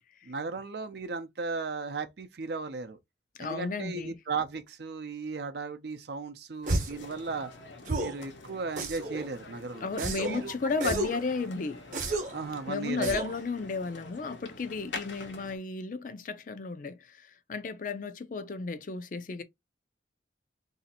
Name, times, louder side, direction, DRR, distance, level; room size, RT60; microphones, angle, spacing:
voice 1, 0.3-3.0 3.4-7.5 8.0-10.5 10.8-11.2 12.3-13.2, right 4 dB, 60° right, 0.6 m, -36 dB
voice 2, 3.4-4.1 9.8-11.8 12.7-17.2 17.5-19.4, left 4 dB, 45° left, 0.4 m, -33 dB
sound 1, 6.6-15.6, left 3 dB, 85° left, 0.9 m, -46 dB
sound 2, 6.7-7.0 7.8-8.2 8.8-9.3 10.0-10.4 10.8-11.2 11.9-12.4 13.0-13.4, right 2 dB, 45° right, 0.9 m, -32 dB
2.7 x 2.4 x 4.1 m
head